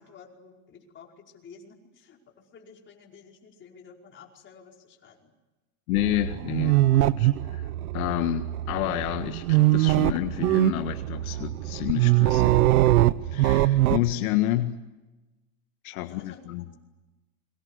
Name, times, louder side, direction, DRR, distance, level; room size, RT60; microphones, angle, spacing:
voice 1, 0.0-5.3 16.0-16.8, left 5 dB, 25° left, 0 dB, 5.1 m, -51 dB
voice 2, 5.9-7.7 7.9-14.7 15.8-16.6, left 15 dB, 75° left, 7 dB, 1.7 m, -30 dB
sound 1, 6.0-14.1, right 16 dB, 85° right, 1.0 m, -23 dB
29.0 x 24.0 x 8.2 m, 1.1 s
supercardioid pair, 140°, 43 cm